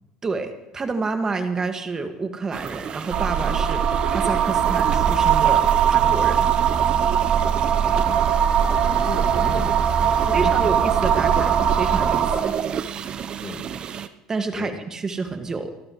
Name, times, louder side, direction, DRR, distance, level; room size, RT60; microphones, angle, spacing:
voice 1, 0.2-6.5 10.3-12.5 14.3-15.7, right 4 dB, 30° right, 6 dB, 1.9 m, -29 dB
sound 1, 2.5-14.1, right 8 dB, 45° right, 0.8 m, -31 dB
sound 2, 3.1-12.4, right 8 dB, 65° right, 3.4 m, -20 dB
voice 2, 7.2-8.3 8.8-10.7 13.4-13.8 14.5-14.7, left 4 dB, 35° left, 1 dB, 2.6 m, -36 dB
27.5 x 12.0 x 3.2 m, 0.95 s
supercardioid pair, 90°, 2 cm